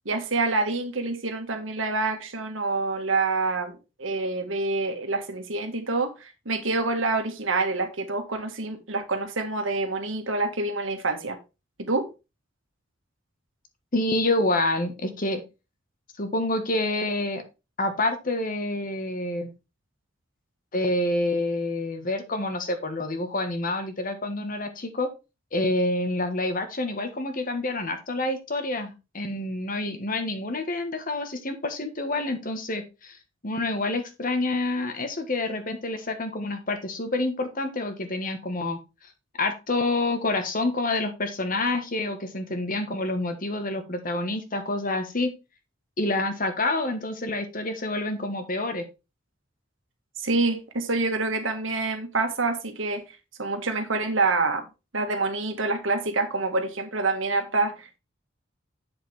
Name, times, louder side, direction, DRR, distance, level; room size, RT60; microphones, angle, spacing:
voice 1, 0.0-11.4 11.8-12.1 50.2-53.0 53.4-54.6 54.9-58.0, right 3 dB, 80° right, 1.7 m, -27 dB
voice 2, 13.9-15.4 16.2-17.4 17.8-19.5 20.7-25.1 25.5-33.2 33.4-38.8 39.4-45.3 46.0-48.9, left 2 dB, 45° left, 1.5 m, -28 dB
8.0 x 6.9 x 3.4 m
head